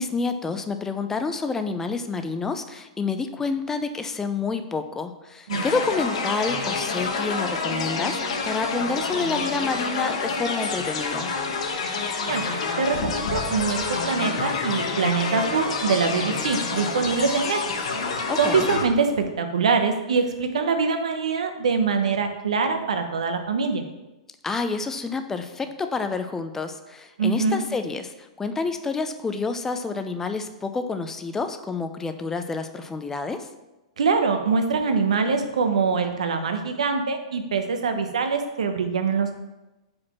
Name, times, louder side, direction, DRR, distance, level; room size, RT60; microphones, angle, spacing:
voice 1, 0.0-11.3 18.3-18.7 24.4-28.1 28.4-33.5, left 4 dB, 10° left, 8 dB, 0.5 m, -28 dB
sound 1, 5.5-18.8, left 4 dB, 70° left, 1.1 m, -28 dB
voice 2, 12.8-17.6 18.4-23.8 27.2-27.6 34.0-39.3, right 5 dB, 80° right, 6 dB, 0.9 m, -24 dB
5.1 x 4.3 x 5.9 m, 1.0 s
hypercardioid pair, 125°, 3 cm